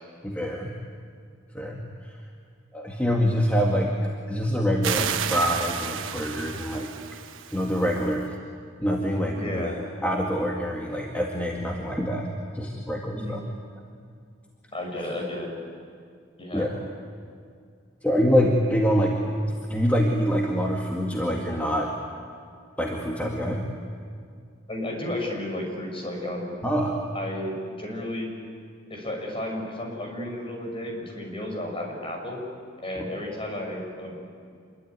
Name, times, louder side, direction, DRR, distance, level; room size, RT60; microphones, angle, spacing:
voice 1, 0.2-0.7 1.5-1.8 2.7-3.9 4.3-6.9 7.5-8.4 8.8-9.7 10.0-12.3 12.5-13.4 16.5-16.7 18.0-19.2 19.7-21.9 22.8-23.7 26.6-27.0, equal, 10° left, -1 dB, 2.0 m, -25 dB
sound 1, 4.8-8.1, right 8 dB, 90° right, 1.2 m, -32 dB
voice 2, 9.3-9.8 13.1-13.4 14.7-15.5 16.4-16.7 24.7-26.6 27.1-28.3 28.9-32.4 32.8-34.2, left 1 dB, 30° left, 1 dB, 6.1 m, -32 dB
27.0 x 22.5 x 9.6 m, 2.2 s
head